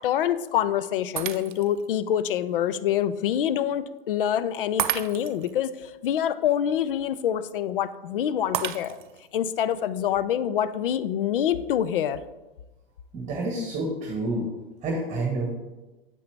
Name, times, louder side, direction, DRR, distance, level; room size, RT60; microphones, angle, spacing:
voice 1, 0.0-9.0 9.3-12.2, left 10 dB, 65° left, 14 dB, 0.6 m, -26 dB
Shatter, 1.2-1.9 2.4-2.5 4.8-5.5 8.5-9.3, right 11 dB, 55° right, 0.5 m, -31 dB
voice 2, 13.1-14.4 14.8-15.5, right 2 dB, 25° right, 0 dB, 1.4 m, -28 dB
8.4 x 5.6 x 3.4 m, 1.1 s
hypercardioid pair, 105°, 30 cm